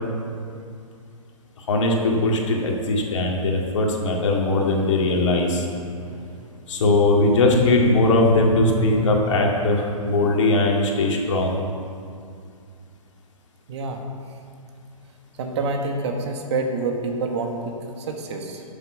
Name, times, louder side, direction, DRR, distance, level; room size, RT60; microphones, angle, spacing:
voice 1, 1.6-5.7 6.7-11.6, left 2 dB, 55° left, 0 dB, 2.3 m, -20 dB
sound 1, 4.6-9.9, left 1 dB, 80° right, 1.4 m, -31 dB
voice 2, 13.7-14.0 15.4-18.6, right 3 dB, 50° right, 3 dB, 1.6 m, -27 dB
12.0 x 7.5 x 5.8 m, 2.3 s
figure-of-eight pair, 125°, 18 cm